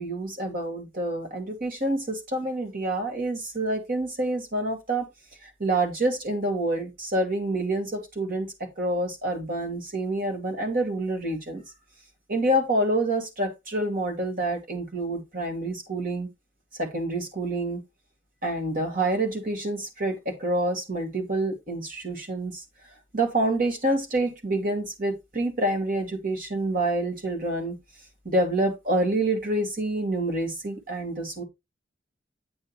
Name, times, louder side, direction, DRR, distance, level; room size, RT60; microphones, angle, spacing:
voice 1, 0.0-5.1 5.4-11.6 12.3-16.3 16.8-17.8 18.4-22.6 23.1-27.7 28.2-31.4, right 1 dB, 45° right, 2.4 m, -27 dB
9.0 x 6.3 x 3.0 m
head